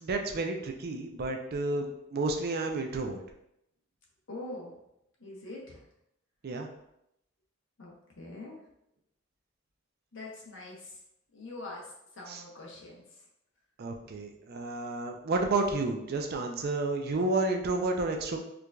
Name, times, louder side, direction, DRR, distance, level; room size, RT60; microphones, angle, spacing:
voice 1, 0.0-3.2 6.4-6.7 12.3-12.4 13.8-18.4, right 2 dB, 50° right, 4 dB, 0.4 m, -31 dB
voice 2, 4.3-4.7 5.2-5.8 7.8-8.6 10.1-10.8 11.3-11.8 12.2-13.0, left 2 dB, 65° left, -2 dB, 0.9 m, -43 dB
4.5 x 2.5 x 2.2 m, 0.80 s
head